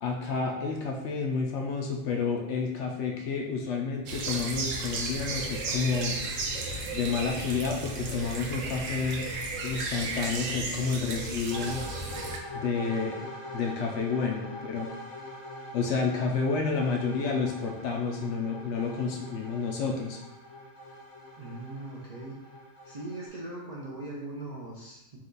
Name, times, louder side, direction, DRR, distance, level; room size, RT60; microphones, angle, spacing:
voice 1, 0.0-6.2 6.9-9.2 9.6-11.8 12.5-13.2 13.5-14.9 15.7-20.2, left 5 dB, 65° left, 1 dB, 0.8 m, -30 dB
sound 1, 4.1-12.4, right 3 dB, 70° right, 1.0 m, -34 dB
sound 2, 11.5-23.3, equal, 85° left, 1.5 m, -43 dB
voice 2, 21.4-22.4 22.8-25.2, right 2 dB, 45° right, -5 dB, 0.6 m, -40 dB
4.5 x 2.4 x 3.9 m, 0.87 s
omnidirectional pair, 1.4 m